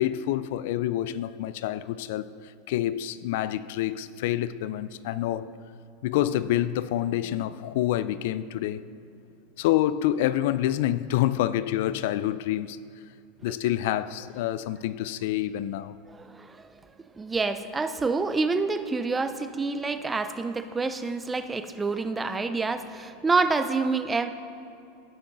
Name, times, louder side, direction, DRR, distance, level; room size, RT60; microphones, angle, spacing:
voice 1, 0.0-5.5 6.0-8.9 9.6-12.8 13.4-16.0, left 13 dB, 70° left, 0.3 m, -27 dB
voice 2, 16.1-16.7 17.2-24.3, right 4 dB, 15° right, 0.5 m, -27 dB
17.0 x 5.9 x 4.0 m
supercardioid pair, 130°, 0 cm